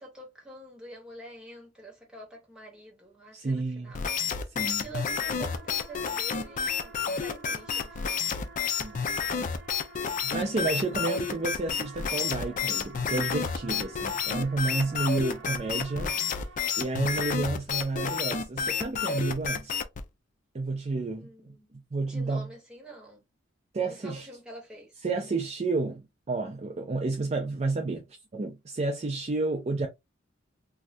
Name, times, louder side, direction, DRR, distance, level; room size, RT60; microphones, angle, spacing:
voice 1, 0.0-4.1 4.7-8.3 10.5-10.7 21.2-21.7 22.0-23.2 23.9-24.9, right 2 dB, 5° right, 1.3 m, -46 dB
voice 2, 3.3-4.0 4.5-4.9 8.8-9.0 10.2-16.5 16.8-19.8 20.5-22.5 23.7-24.3 25.0-28.1 28.3-29.9, right 3 dB, 35° right, 0.4 m, -31 dB
sound 1, 3.9-20.0, left 6 dB, 40° left, 0.4 m, -30 dB
sound 2, 4.5-17.3, right 4 dB, 65° right, 0.9 m, -49 dB
2.6 x 2.3 x 3.2 m
head